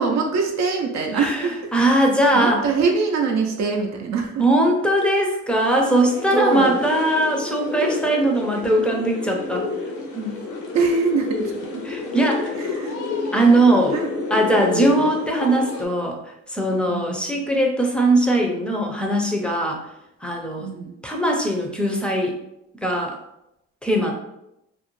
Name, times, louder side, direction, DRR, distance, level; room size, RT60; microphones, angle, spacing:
voice 1, 0.0-1.7 2.3-4.5 6.3-6.8 10.7-11.9 12.6-13.0 13.9-14.1 14.7-15.1 16.9-17.3 20.6-21.0, right 4 dB, 65° right, 2 dB, 0.5 m, -24 dB
voice 2, 1.2-2.6 4.4-9.7 10.1-10.4 11.9-12.6 13.3-14.0 14.3-16.2 16.5-19.8 20.2-20.7 21.0-22.4 22.8-23.2 23.8-24.1, right 1 dB, 5° left, 1 dB, 0.5 m, -20 dB
sound 1, 5.8-15.9, left 3 dB, 80° left, 0.6 m, -30 dB
2.5 x 2.1 x 3.0 m, 0.84 s
cardioid pair, 90°, 30 cm